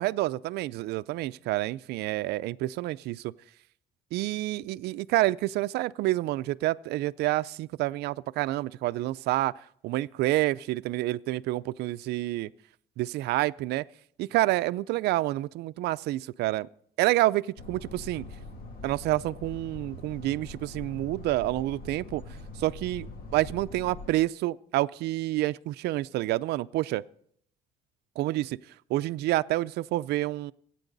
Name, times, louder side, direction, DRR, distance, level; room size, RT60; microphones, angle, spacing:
voice 1, 0.0-3.3 4.1-9.5 9.8-12.5 13.0-13.8 14.2-16.7 17.0-18.2 18.8-22.2 22.6-23.1 23.3-27.0 28.2-28.6 28.9-30.5, right 17 dB, 80° right, 0.5 m, -28 dB
sound 1, 17.6-24.1, left 2 dB, 60° left, 2.7 m, -43 dB
24.5 x 9.2 x 4.0 m
cardioid pair, 110°, 17 cm